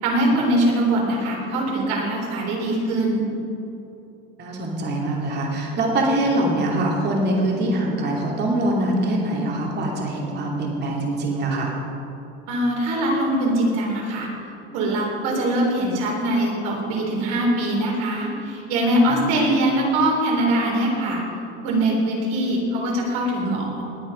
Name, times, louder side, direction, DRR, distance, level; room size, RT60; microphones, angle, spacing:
voice 1, 0.0-3.3 12.5-14.3 14.7-21.2 21.6-23.8, right 1 dB, 60° right, -1 dB, 3.9 m, -22 dB
voice 2, 4.4-11.7 19.1-19.2, right 1 dB, 35° right, -1 dB, 2.8 m, -23 dB
20.0 x 8.4 x 5.2 m, 2.9 s
cardioid pair, 150°, 31 cm